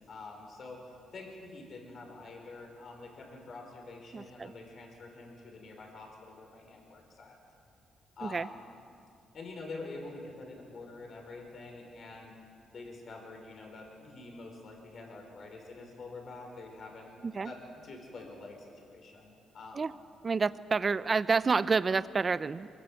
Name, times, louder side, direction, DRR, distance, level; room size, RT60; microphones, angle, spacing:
voice 1, 0.1-0.8 1.1-7.4 8.2-8.7 9.3-12.3 12.7-19.9, left 3 dB, 55° left, 2 dB, 5.5 m, -46 dB
voice 2, 4.1-4.5 8.2-8.5 17.2-17.5 19.7-19.9 20.2-22.7, right 4 dB, 35° right, 15 dB, 0.7 m, -29 dB
23.5 x 20.5 x 7.9 m, 2.4 s
cardioid pair, 90°, 0 cm